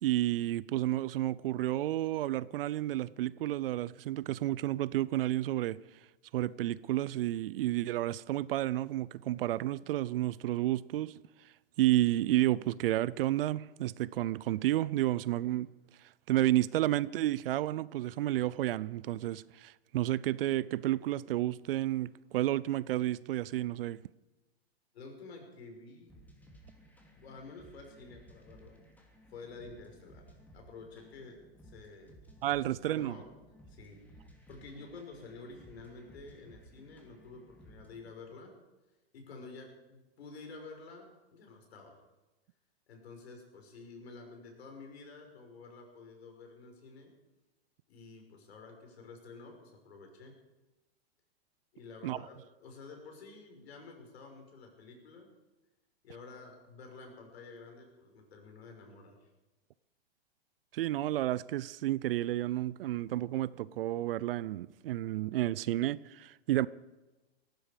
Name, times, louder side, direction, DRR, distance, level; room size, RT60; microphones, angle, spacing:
voice 1, 0.0-5.8 6.3-11.2 11.8-15.7 16.3-24.0 32.4-33.2 52.0-52.2 60.7-66.7, right 14 dB, 60° right, 0.6 m, -31 dB
voice 2, 24.9-26.1 27.2-28.8 29.3-31.4 31.6-32.2 32.6-33.3 33.7-38.5 39.1-42.0 42.9-47.1 47.9-50.4 51.7-55.3 56.0-59.3, left 3 dB, 70° left, 5.5 m, -50 dB
sound 1, 26.1-38.1, right 1 dB, 5° left, 3.1 m, -58 dB
18.5 x 15.0 x 5.1 m
hypercardioid pair, 125°, 32 cm